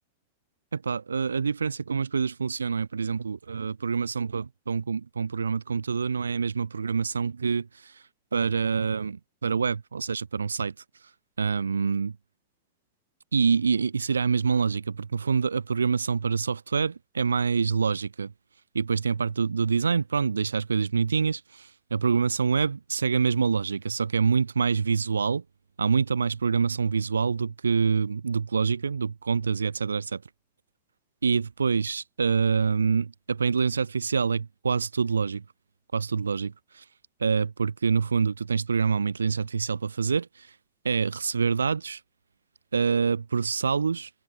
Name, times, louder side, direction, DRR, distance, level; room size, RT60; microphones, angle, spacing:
voice 1, 0.7-8.0 8.3-10.7 11.4-12.2 13.3-18.3 18.7-25.4 25.8-30.2 31.2-35.4 35.9-36.8 37.2-40.5 40.8-42.0 42.7-44.1, right 5 dB, 75° right, 2.1 m, -26 dB
figure-of-eight pair, 90°, 0 cm